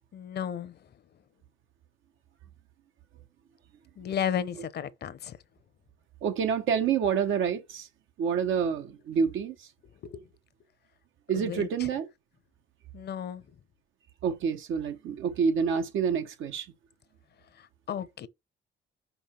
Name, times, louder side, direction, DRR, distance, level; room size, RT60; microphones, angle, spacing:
voice 1, 0.1-0.7 4.0-5.3 10.0-10.2 11.3-11.7 12.9-13.4 17.9-18.3, left 8 dB, 55° left, 0.8 m, -33 dB
voice 2, 6.2-7.9 8.2-9.5 11.3-12.1 14.2-16.7, right 6 dB, 80° right, 1.2 m, -28 dB
5.4 x 5.0 x 4.4 m
cardioid pair, 90°, 20 cm